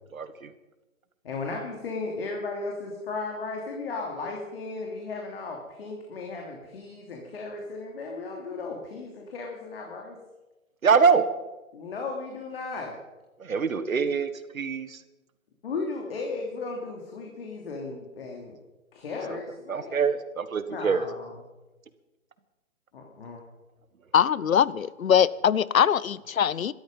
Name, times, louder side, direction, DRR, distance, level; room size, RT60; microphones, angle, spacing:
voice 1, 1.2-10.2 11.7-13.0 15.6-18.6 18.9-20.0 20.7-21.4 22.9-23.4, left 3 dB, 45° left, 1 dB, 2.9 m, -35 dB
voice 2, 10.8-11.2 13.4-14.3 14.5-14.9 19.7-21.1, right 5 dB, 75° right, 12 dB, 1.6 m, -23 dB
voice 3, 24.1-26.7, left 8 dB, 75° left, 20 dB, 0.8 m, -22 dB
19.5 x 13.0 x 5.4 m, 1.1 s
hypercardioid pair, 160°, 41 cm